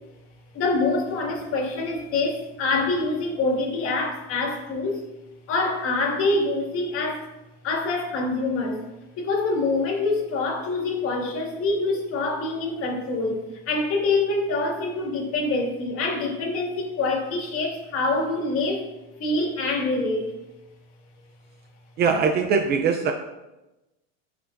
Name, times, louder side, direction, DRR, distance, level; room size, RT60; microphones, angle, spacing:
voice 1, 0.5-5.1 5.5-7.2 7.6-8.8 9.2-18.9 19.2-20.3, left 3 dB, 35° left, 0 dB, 2.0 m, -25 dB
voice 2, 22.0-23.1, right 5 dB, 30° right, 5 dB, 0.5 m, -21 dB
13.5 x 5.7 x 2.6 m, 1.0 s
supercardioid pair, 150°, 36 cm